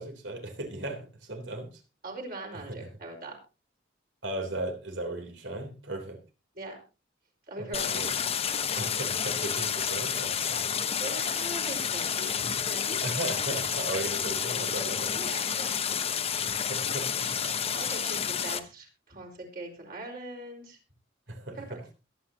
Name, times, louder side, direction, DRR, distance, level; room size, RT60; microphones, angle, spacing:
voice 1, 0.0-1.7 2.7-2.9 4.2-6.2 7.6-8.1 8.7-10.8 13.0-15.2 16.4-17.3 21.3-21.8, right 2 dB, 75° right, 4 dB, 3.5 m, -36 dB
voice 2, 2.0-3.4 6.5-6.8 7.5-8.0 10.9-13.0 15.1-15.8 17.7-20.8 21.5-21.7, right 2 dB, 50° right, 1 dB, 4.8 m, -41 dB
Stream, 7.7-18.6, left 7 dB, 35° left, 0.9 m, -30 dB
22.0 x 9.2 x 2.9 m, 0.31 s
head